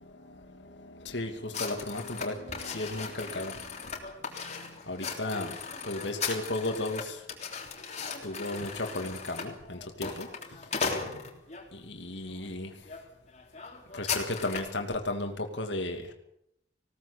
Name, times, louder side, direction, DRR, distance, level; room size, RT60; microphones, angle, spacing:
voice 1, 0.0-3.8 4.4-5.6 5.8-7.2 8.2-10.6 11.7-12.8 13.9-16.1, left 2 dB, 70° left, 4 dB, 2.7 m, -35 dB
sound 1, 1.5-11.7 12.3-12.5 12.9-13.0 13.3-14.8, left 5 dB, 35° left, 3.5 m, -37 dB
20.0 x 17.5 x 8.4 m, 0.76 s
head